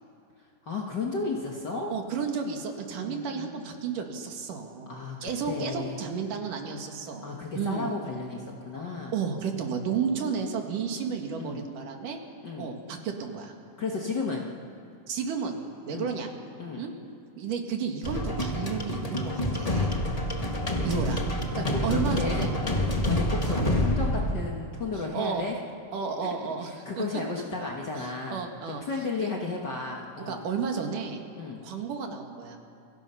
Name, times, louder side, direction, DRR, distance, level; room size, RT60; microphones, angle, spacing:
voice 1, 0.6-1.9 3.0-3.6 4.9-5.2 5.5-6.0 7.2-9.2 11.4-11.6 12.4-12.7 13.8-14.5 15.9-16.1 16.6-16.8 21.5-22.5 23.1-25.6 26.9-28.4 28.9-30.4 31.3-31.6, left 3 dB, 45° left, -1 dB, 1.6 m, -33 dB
voice 2, 1.9-7.9 9.1-12.2 12.6-13.5 15.1-16.3 16.8-16.9 17.4-20.0 20.8-21.3 21.6-22.5 23.4-23.6 25.1-25.4 25.9-26.7 27.0-27.1 28.3-28.8 30.2-31.2 31.6-32.6, right 6 dB, 75° right, 3 dB, 3.5 m, -32 dB
sound 1, 18.0-24.5, left 1 dB, 60° left, 0.4 m, -27 dB
28.5 x 23.5 x 5.8 m, 2.6 s
omnidirectional pair, 3.7 m